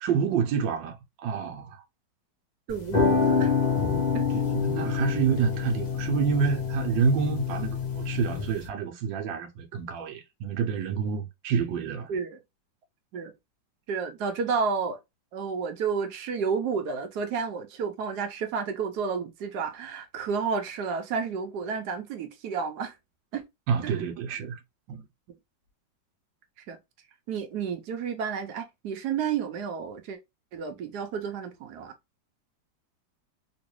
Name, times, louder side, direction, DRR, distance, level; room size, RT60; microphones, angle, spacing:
voice 1, 0.0-1.8 4.3-12.1 23.7-24.6 24.9-25.0, right 6 dB, 90° right, 1.4 m, -28 dB
sound 1, 2.7-8.7, left 5 dB, 60° left, 0.4 m, -27 dB
voice 2, 2.7-3.5 4.1-4.3 12.1-12.4 13.1-13.3 13.9-15.0 15.3-23.0 23.3-23.4 23.8-24.0 26.6-26.8 27.3-30.2 30.5-31.9, right 6 dB, 70° right, 1.1 m, -31 dB
3.0 x 3.0 x 3.0 m
omnidirectional pair, 2.0 m